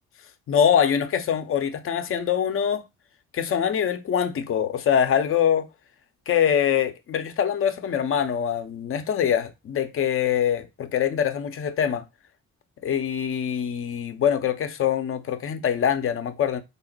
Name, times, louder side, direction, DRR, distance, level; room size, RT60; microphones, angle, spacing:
voice 1, 0.5-2.8 3.3-5.7 6.3-12.0 12.8-16.6, left 8 dB, 35° left, 0.5 m, -24 dB
3.4 x 2.1 x 4.0 m
figure-of-eight pair, 40°, 40 cm